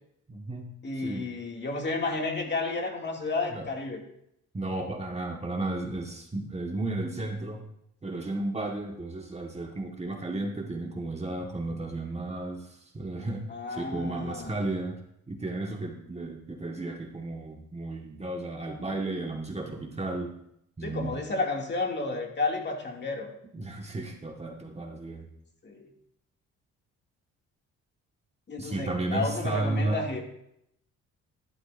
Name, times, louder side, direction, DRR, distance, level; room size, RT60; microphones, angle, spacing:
voice 1, 0.3-0.7 1.0-1.3 3.5-3.7 4.5-7.6 8.0-13.4 13.7-15.0 15.3-20.3 20.8-21.2 23.5-25.3 28.6-30.0, right 2 dB, 20° right, 1 dB, 1.5 m, -33 dB
voice 2, 0.8-4.0 13.5-14.6 20.8-23.3 25.6-25.9 28.5-30.2, left 3 dB, 35° left, 1 dB, 2.3 m, -31 dB
11.5 x 11.5 x 2.6 m, 0.76 s
cardioid pair, 90°, 30 cm